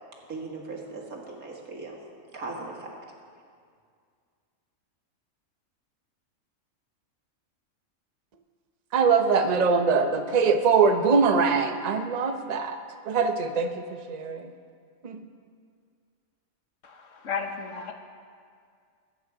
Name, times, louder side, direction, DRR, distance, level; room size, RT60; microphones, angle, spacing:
voice 1, 0.3-2.0 2.3-2.9, right 3 dB, 80° right, -1 dB, 2.4 m, -38 dB
voice 2, 8.9-12.8 13.0-14.5 15.0-15.3, right 5 dB, 35° right, 7 dB, 0.7 m, -23 dB
voice 3, 16.8-17.9, left 6 dB, 65° left, 5 dB, 1.4 m, -34 dB
21.5 x 8.8 x 4.9 m, 2.2 s
omnidirectional pair, 1.5 m